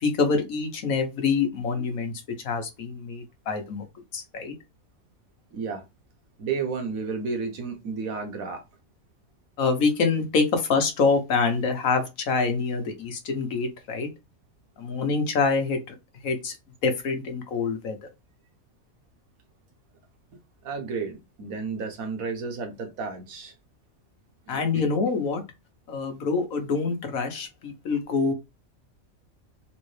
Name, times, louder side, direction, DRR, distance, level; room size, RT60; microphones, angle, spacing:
voice 1, 0.0-2.1 2.4-3.8 4.1-4.5 9.6-14.1 14.8-15.8 16.2-16.5 16.8-18.0 24.5-25.4 25.9-28.3, left 4 dB, 85° left, 1.4 m, -25 dB
voice 2, 5.5-5.8 6.4-8.6 20.6-23.5 24.5-24.8, right 5 dB, 90° right, 1.5 m, -32 dB
3.6 x 3.2 x 3.2 m
omnidirectional pair, 1.4 m